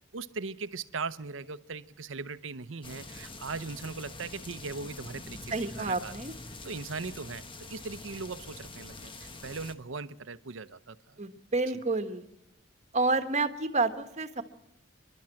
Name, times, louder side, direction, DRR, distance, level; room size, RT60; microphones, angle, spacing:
voice 1, 0.1-6.1 6.6-11.2 11.7-11.8, right 4 dB, 80° right, 14 dB, 0.8 m, -39 dB
sound 1, 2.8-9.7, left 3 dB, 25° left, 1.2 m, -45 dB
voice 2, 5.5-6.3 11.2-12.2 12.9-14.4, right 3 dB, 35° right, 9 dB, 1.3 m, -29 dB
28.5 x 12.0 x 7.7 m, 0.92 s
head